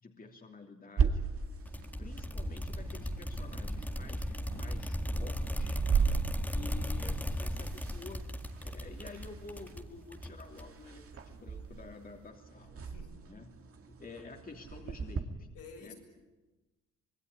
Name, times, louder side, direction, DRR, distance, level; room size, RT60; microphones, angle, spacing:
voice 1, 0.0-1.3 2.0-5.8 6.5-12.8 13.3-15.5 15.8-15.9, left 3 dB, 30° left, 2 dB, 3.0 m, -50 dB
sound 1, 1.0-15.2, right 6 dB, 50° right, 2.2 m, -37 dB
sound 2, 1.7-10.9, equal, 5° left, 2.0 m, -37 dB
voice 2, 12.8-13.1 15.5-15.9, left 5 dB, 85° left, 1 dB, 7.0 m, -50 dB
25.5 x 19.5 x 9.9 m, 1.1 s
cardioid pair, 90°, 30 cm